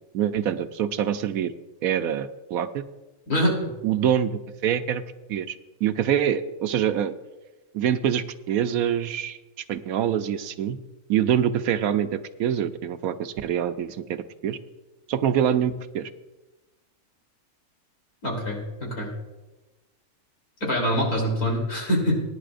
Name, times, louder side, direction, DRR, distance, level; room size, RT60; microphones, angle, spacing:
voice 1, 0.1-1.5 1.8-2.8 3.8-4.3 4.6-5.0 5.3-7.1 7.7-9.4 9.7-10.8 11.1-14.6 15.1-16.1, right 9 dB, 75° right, 10 dB, 1.1 m, -25 dB
voice 2, 3.3-3.6 18.2-19.1 20.6-22.2, equal, 85° left, -2 dB, 3.9 m, -24 dB
20.0 x 10.0 x 2.5 m, 1.1 s
omnidirectional pair, 1.5 m